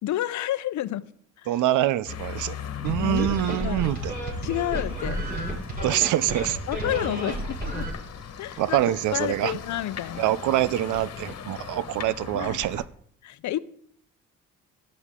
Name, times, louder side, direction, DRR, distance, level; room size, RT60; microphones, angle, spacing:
voice 1, 0.0-1.0 1.4-1.6 3.0-3.8 4.4-5.2 6.7-7.9 8.4-8.8 9.1-10.3 12.3-12.7 13.2-13.6, left 13 dB, 70° left, 0.7 m, -30 dB
voice 2, 1.5-2.6 2.8-4.1 5.8-6.6 8.6-9.5 10.2-12.8, right 13 dB, 80° right, 0.6 m, -25 dB
sound 1, 2.1-12.9, left 7 dB, 55° left, 1.5 m, -39 dB
sound 2, 2.8-7.9, right 1 dB, 35° right, 7.6 m, -31 dB
18.0 x 12.5 x 3.7 m
cardioid pair, 90°, 30 cm